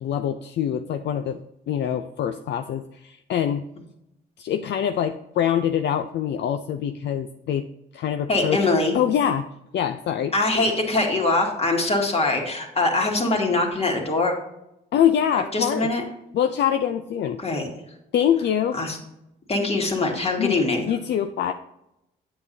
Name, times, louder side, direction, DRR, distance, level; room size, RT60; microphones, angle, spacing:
voice 1, 0.0-3.7 4.4-7.7 7.9-8.7 8.9-9.5 9.7-10.3 14.9-15.9 16.3-17.4 18.1-18.8 20.4-21.5, left 9 dB, 60° left, 8 dB, 0.5 m, -24 dB
voice 2, 8.3-9.0 10.3-14.3 15.5-16.0 17.4-17.7 18.8-19.0 19.5-20.9, left 2 dB, 30° left, 1 dB, 2.0 m, -22 dB
8.4 x 7.6 x 2.7 m, 0.85 s
cardioid pair, 90°, 20 cm